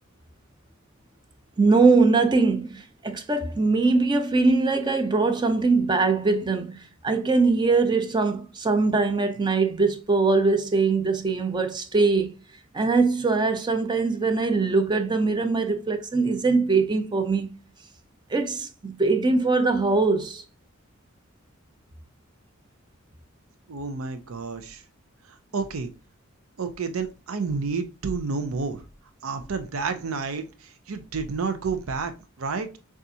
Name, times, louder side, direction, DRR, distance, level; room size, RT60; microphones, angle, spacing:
voice 1, 1.6-12.3 12.7-17.5 18.3-20.4, right 3 dB, 20° right, 0.6 m, -22 dB
voice 2, 23.7-24.8 25.5-25.9 26.6-28.8 29.2-32.8, right 4 dB, 80° right, 0.6 m, -30 dB
6.7 x 2.5 x 2.7 m
head